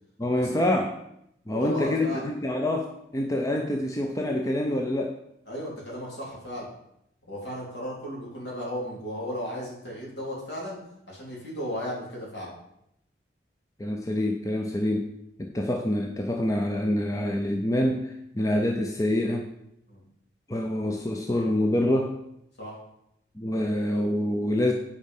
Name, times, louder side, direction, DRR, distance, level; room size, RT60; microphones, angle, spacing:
voice 1, 0.2-0.9 1.5-5.2 13.8-15.1 15.4-19.5 20.5-22.1 23.4-24.7, left 1 dB, 20° left, 2 dB, 0.5 m, -26 dB
voice 2, 1.5-2.3 5.5-6.7 7.2-10.8 11.1-12.5 19.9-20.0 22.6-22.8, equal, 60° left, -4 dB, 3.2 m, -35 dB
8.5 x 5.1 x 5.4 m, 0.79 s
head